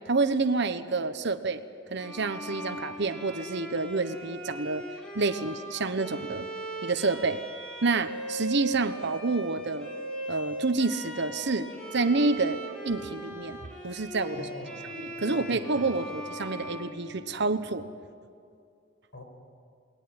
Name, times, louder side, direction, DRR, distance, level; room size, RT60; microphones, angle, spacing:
voice 1, 0.1-1.6 1.9-4.9 5.1-6.5 6.8-7.4 7.8-9.9 10.3-12.6 12.8-13.6 13.8-14.5 15.0-17.9, right 3 dB, 60° right, 9 dB, 1.1 m, -28 dB
Bowed string instrument, 2.0-17.7, right 1 dB, 5° left, 4.2 m, -39 dB
voice 2, 14.3-14.8 15.2-16.2 19.1-19.2, left 1 dB, 65° left, 5 dB, 5.3 m, -42 dB
28.5 x 20.5 x 8.9 m, 2.4 s
head